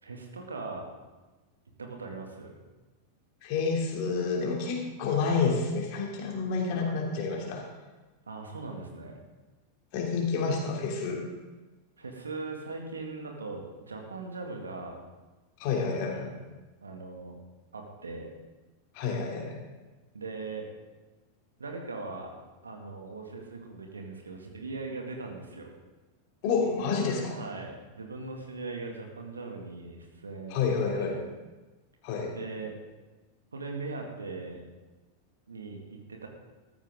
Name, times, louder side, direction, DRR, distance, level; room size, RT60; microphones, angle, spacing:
voice 1, 0.0-0.9 1.8-2.6 8.3-9.2 12.0-15.0 16.1-16.4 16.8-17.3 17.7-18.3 20.1-20.7 21.6-22.4 22.6-25.7 27.3-30.6 31.0-31.2 32.3-32.7 33.5-34.6 35.5-36.3, right 3 dB, 75° right, 2 dB, 2.1 m, -39 dB
voice 2, 3.4-7.7 9.9-11.2 15.6-16.3 18.9-19.6 26.4-27.4 30.5-31.2 32.0-32.4, left 5 dB, 45° left, 0 dB, 2.9 m, -29 dB
14.0 x 13.5 x 3.7 m, 1.2 s
figure-of-eight pair, 90°, 0 cm